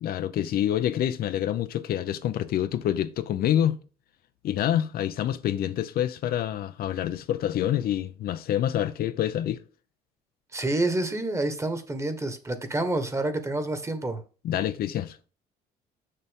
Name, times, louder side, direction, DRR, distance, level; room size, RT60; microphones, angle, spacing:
voice 1, 0.0-3.8 4.4-9.6 14.4-15.3, left 11 dB, 65° left, 0.7 m, -27 dB
voice 2, 10.5-14.2, right 2 dB, 15° right, 1.5 m, -28 dB
6.8 x 6.7 x 3.7 m
cardioid pair, 110°, 17 cm